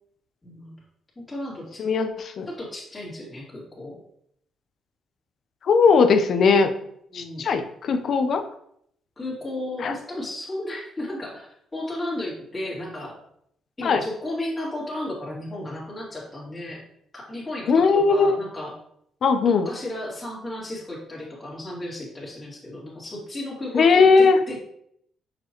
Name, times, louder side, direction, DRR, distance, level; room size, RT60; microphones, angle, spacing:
voice 1, 0.4-0.7 1.2-1.8 2.5-4.0 6.8-7.5 9.2-13.2 13.8-16.8 17.1-18.7 19.4-24.6, left 1 dB, 20° left, -6 dB, 2.5 m, -34 dB
voice 2, 1.8-2.5 5.6-6.7 7.1-8.4 9.8-9.9 13.8-14.0 17.7-18.4 19.2-19.7 23.7-24.4, left 4 dB, 60° left, 8 dB, 0.7 m, -18 dB
6.2 x 5.0 x 3.0 m, 0.69 s
cardioid pair, 90°, 0 cm